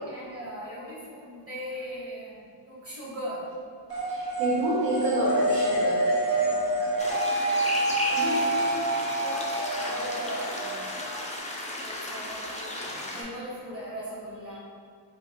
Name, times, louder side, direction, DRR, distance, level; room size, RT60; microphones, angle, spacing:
voice 1, 0.0-2.4 2.7-3.5 6.4-6.9 9.1-10.8 11.8-14.6, equal, 30° right, -8 dB, 1.2 m, -39 dB
sound 1, 3.9-11.4, right 1 dB, 55° right, 1.0 m, -27 dB
voice 2, 4.1-6.5 6.8-6.9 8.1-8.5 11.0-11.3, right 1 dB, 70° right, -9 dB, 0.8 m, -29 dB
sound 2, 7.0-13.2, left 1 dB, 15° left, 0.4 m, -35 dB
3.1 x 2.4 x 2.9 m, 2.2 s
wide cardioid pair, 65°, 44 cm